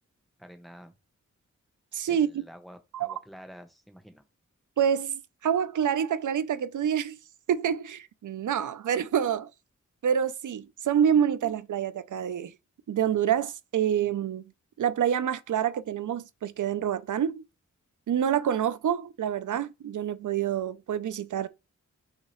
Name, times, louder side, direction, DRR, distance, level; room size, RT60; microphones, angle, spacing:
voice 1, 0.4-0.9 2.1-4.2, equal, ahead, 0.8 m, -49 dB
voice 2, 1.9-2.4 2.9-3.1 4.8-7.2 7.5-9.5 10.0-12.5 12.9-14.4 14.8-17.4 18.1-21.5, right 9 dB, 85° right, 0.5 m, -27 dB
5.6 x 2.8 x 3.0 m
wide cardioid pair, 100°, 30 cm